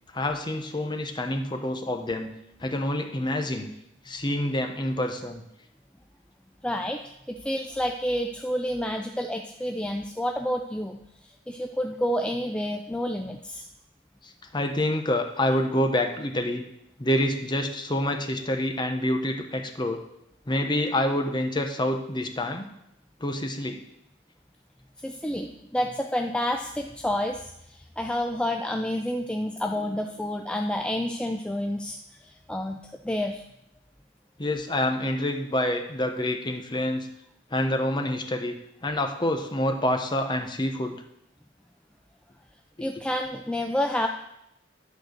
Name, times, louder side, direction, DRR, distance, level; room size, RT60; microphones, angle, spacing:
voice 1, 0.1-2.3 2.6-3.7 4.0-5.4 14.2-16.6 17.0-20.0 20.5-22.6 23.2-23.8 34.4-37.1 37.5-38.6 38.8-40.9 42.8-42.9, left 1 dB, 25° left, 4 dB, 0.9 m, -27 dB
voice 2, 6.6-7.0 7.3-11.0 11.5-13.6 25.0-32.0 32.2-33.4 42.8-44.1, left 1 dB, 5° left, 3 dB, 0.4 m, -29 dB
10.5 x 4.6 x 6.5 m, 0.80 s
head